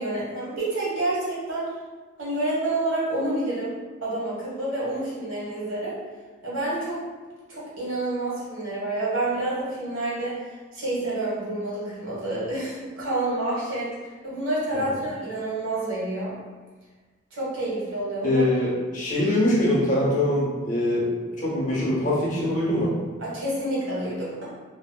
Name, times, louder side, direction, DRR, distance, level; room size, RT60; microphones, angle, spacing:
voice 1, 0.0-1.7 2.2-3.7 4.0-6.0 6.4-7.0 7.5-16.3 17.3-18.4 23.2-24.4, right 2 dB, 90° right, -8 dB, 1.3 m, -28 dB
voice 2, 18.2-21.1 21.4-22.9, left 1 dB, 40° left, -6 dB, 0.8 m, -23 dB
2.9 x 2.7 x 2.2 m, 1.3 s
head